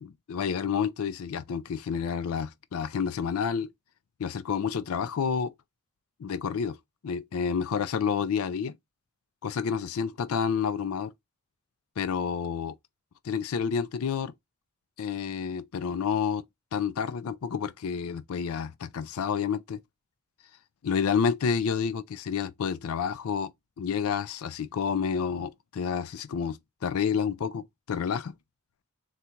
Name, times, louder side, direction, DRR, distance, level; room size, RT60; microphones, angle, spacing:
voice 1, 0.0-3.7 4.2-5.5 6.2-6.8 7.0-8.8 9.4-11.1 12.0-12.8 13.2-14.3 15.0-16.4 16.7-19.8 20.8-23.5 23.8-28.3, left 6 dB, 75° left, 0.4 m, -29 dB
3.9 x 2.3 x 4.3 m
head